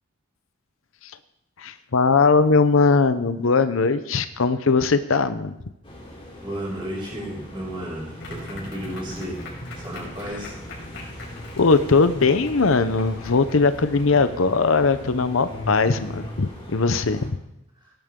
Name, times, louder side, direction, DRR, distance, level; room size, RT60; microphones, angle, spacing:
voice 1, 1.6-5.5 11.6-17.3, left 4 dB, 85° left, 12 dB, 0.8 m, -20 dB
sound 1, 5.8-17.3, equal, 25° left, 3.4 m, -42 dB
voice 2, 6.4-9.4 9.8-10.5, equal, 25° right, -4 dB, 6.4 m, -33 dB
sound 2, 8.2-16.3, left 1 dB, 65° left, 5.2 m, -38 dB
18.5 x 12.0 x 3.8 m, 0.85 s
head